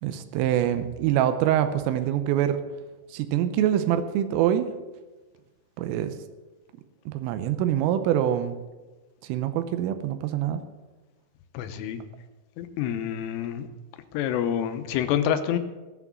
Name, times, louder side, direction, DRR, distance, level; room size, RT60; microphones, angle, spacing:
voice 1, 0.0-2.6 3.1-4.7 5.8-6.2 7.1-8.6 9.2-10.6, right 11 dB, 90° right, 9 dB, 3.4 m, -25 dB
voice 2, 11.5-12.0 12.6-13.7 14.1-15.6, left 9 dB, 85° left, 9 dB, 3.3 m, -27 dB
18.0 x 6.1 x 8.3 m, 1.2 s
omnidirectional pair, 5.9 m